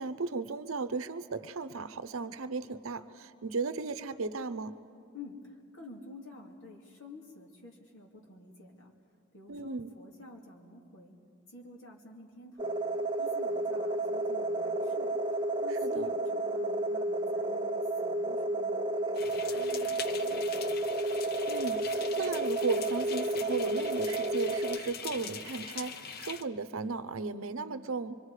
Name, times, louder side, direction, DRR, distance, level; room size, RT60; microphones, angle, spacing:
voice 1, 0.0-4.8 9.5-9.9 15.7-16.1 21.5-28.2, right 4 dB, 85° right, 12 dB, 0.7 m, -35 dB
voice 2, 5.1-8.9 9.3-11.2 11.5-12.8 13.2-15.1 15.6-18.8 19.2-20.6, left 2 dB, 70° left, -1 dB, 2.6 m, -50 dB
sound 1, 12.6-24.8, right 2 dB, 20° right, 0.6 m, -31 dB
sound 2, 19.1-26.4, left 7 dB, 45° left, 0.6 m, -43 dB
25.0 x 24.0 x 4.9 m, 2.4 s
head